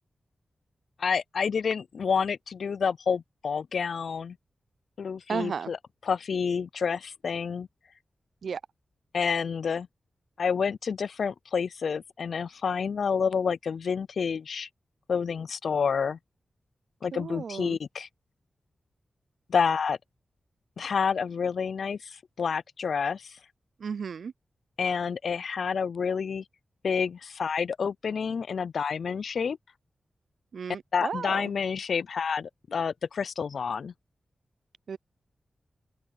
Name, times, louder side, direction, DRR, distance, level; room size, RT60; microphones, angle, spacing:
voice 1, 1.0-4.4 5.0-5.8 6.1-7.7 9.1-9.9 10.4-14.7 15.1-16.2 17.0-18.1 19.5-20.0 20.8-23.3 24.8-26.4 26.8-29.6 30.9-33.9, left 6 dB, 75° left, 0.3 m, -29 dB
voice 2, 5.3-5.7 8.4-8.6 17.1-17.8 23.8-24.3 30.5-31.5 34.9-35.0, right 6 dB, 75° right, 0.3 m, -34 dB
open air
wide cardioid pair, 110°, 0 cm